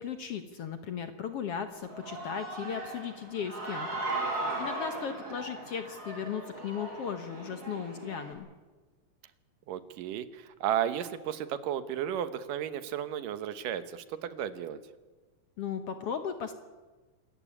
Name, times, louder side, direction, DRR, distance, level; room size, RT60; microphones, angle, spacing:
voice 1, 0.0-4.0 4.6-8.5 15.6-16.5, left 7 dB, 60° left, 8 dB, 1.7 m, -36 dB
Human voice / Cheering, 1.7-8.3, right 2 dB, 25° right, 6.5 m, -38 dB
voice 2, 4.1-4.7 9.7-14.8, right 10 dB, 80° right, 12 dB, 2.7 m, -34 dB
26.0 x 14.5 x 9.9 m, 1.3 s
omnidirectional pair, 3.8 m